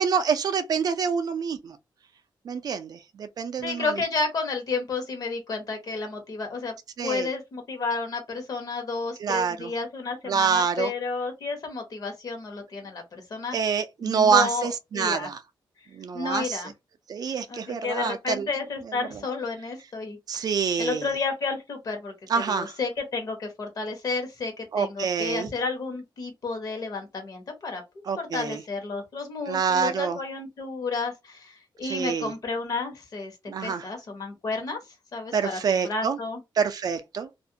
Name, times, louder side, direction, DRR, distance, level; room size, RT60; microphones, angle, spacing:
voice 1, 0.0-1.8 2.5-3.9 7.0-7.3 9.2-9.7 10.3-10.9 13.5-15.4 15.9-16.6 17.1-18.5 20.3-21.1 22.3-22.7 24.7-25.5 28.1-28.6 29.5-30.2 31.8-32.3 33.5-33.8 35.3-36.2 36.6-37.3, right 6 dB, 50° right, 0.3 m, -26 dB
voice 2, 3.6-6.8 7.0-13.6 14.0-14.7 14.9-15.3 16.1-16.7 17.5-20.5 20.8-22.1 22.5-27.8 28.2-33.3 33.6-34.8 35.1-36.4, left 4 dB, 45° left, 0.9 m, -31 dB
2.4 x 2.1 x 2.7 m
wide cardioid pair, 175°, 9 cm